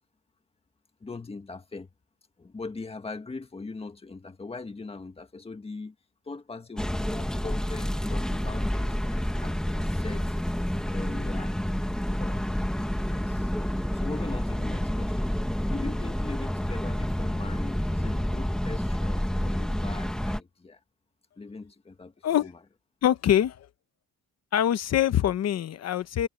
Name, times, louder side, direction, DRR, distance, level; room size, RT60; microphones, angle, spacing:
voice 1, 1.0-1.9 2.4-6.0 6.3-10.3 10.9-11.5 12.2-12.5 13.0-13.5 13.9-15.4 15.7-20.8 21.4-22.5, left 3 dB, 15° left, 1.8 m, -40 dB
sound 1, 6.8-20.4, equal, ahead, 1.5 m, -29 dB
voice 2, 23.0-23.7 24.5-26.3, left 11 dB, 50° left, 0.9 m, -24 dB
cardioid pair, 160°, 33 cm